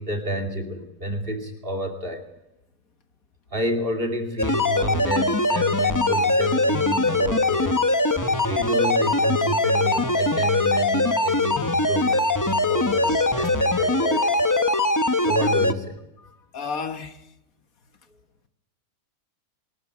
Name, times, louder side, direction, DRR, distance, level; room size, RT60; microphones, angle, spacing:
voice 1, 0.0-2.2 3.5-7.8 8.3-14.5 15.2-16.0, equal, 35° right, 3 dB, 2.8 m, -30 dB
sound 1, 4.4-15.7, left 2 dB, 15° left, 0.7 m, -21 dB
voice 2, 16.5-17.1, left 5 dB, 65° left, 8 dB, 1.7 m, -31 dB
23.0 x 13.5 x 9.7 m, 0.91 s
omnidirectional pair, 1.6 m